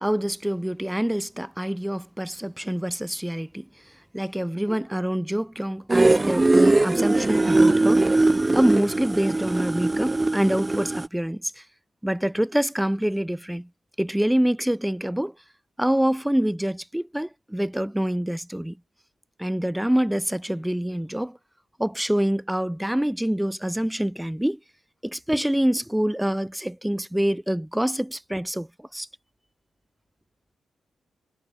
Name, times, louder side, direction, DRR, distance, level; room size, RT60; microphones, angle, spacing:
voice 1, 0.0-3.7 4.1-11.6 12.0-13.7 14.0-15.3 15.8-18.8 19.4-21.4 21.8-24.6 25.0-29.1, equal, 5° right, 4.0 m, -26 dB
sound 1, 5.9-11.1, right 2 dB, 20° right, 0.7 m, -20 dB
cardioid pair, 85°, 0 cm